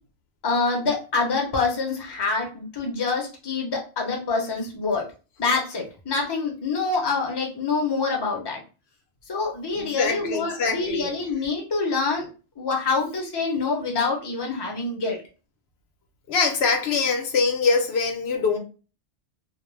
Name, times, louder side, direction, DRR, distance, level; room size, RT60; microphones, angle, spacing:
voice 1, 0.4-5.1 5.4-8.6 9.3-12.3 12.6-15.2, left 4 dB, 25° left, 0.6 m, -26 dB
voice 2, 9.7-11.1 16.3-18.6, left 4 dB, 70° left, 0.9 m, -23 dB
2.4 x 2.0 x 3.1 m
omnidirectional pair, 1.1 m